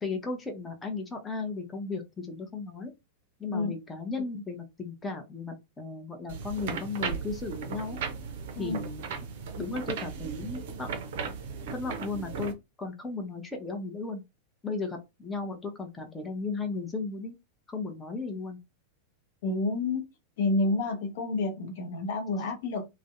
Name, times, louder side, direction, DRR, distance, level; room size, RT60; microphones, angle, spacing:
voice 1, 0.0-2.9 3.4-8.0 8.6-9.1 9.6-10.9 11.7-14.2 14.6-17.3 17.7-18.6, left 3 dB, 15° left, 0.6 m, -35 dB
sound 1, 6.3-12.5, right 5 dB, 55° right, 0.4 m, -36 dB
voice 2, 19.4-20.0 20.4-22.9, left 2 dB, 55° left, 0.6 m, -29 dB
2.5 x 2.0 x 2.4 m
figure-of-eight pair, 90°, 0 cm